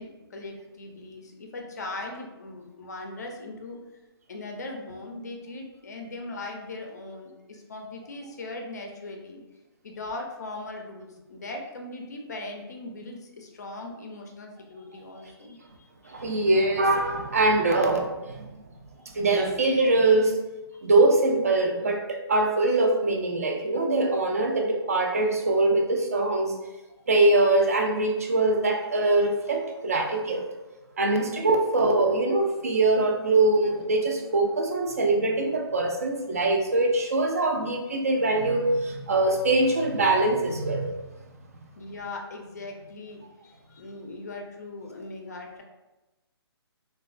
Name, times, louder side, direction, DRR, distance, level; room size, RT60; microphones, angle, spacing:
voice 1, 0.0-3.8 4.3-9.4 9.8-16.5 20.7-20.9 41.8-45.6, left 2 dB, 40° left, 2 dB, 0.4 m, -39 dB
voice 2, 16.1-18.5 19.1-20.4 20.8-26.6 27.1-30.5 31.0-40.9, right 2 dB, 35° right, 3 dB, 0.3 m, -23 dB
3.9 x 2.1 x 2.4 m, 1.1 s
hypercardioid pair, 175°, 14 cm